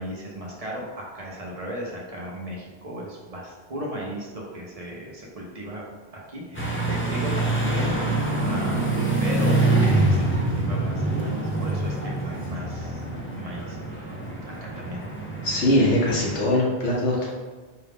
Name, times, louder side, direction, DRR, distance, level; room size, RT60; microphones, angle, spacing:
voice 1, 0.0-5.8 6.3-13.0 13.3-14.1 14.5-15.1, equal, 35° right, -3 dB, 0.8 m, -36 dB
sound 1, 6.5-16.4, right 2 dB, 15° left, 0.4 m, -25 dB
voice 2, 15.4-17.3, left 1 dB, 80° left, -4 dB, 1.3 m, -21 dB
4.6 x 2.3 x 3.5 m, 1.4 s
omnidirectional pair, 1.1 m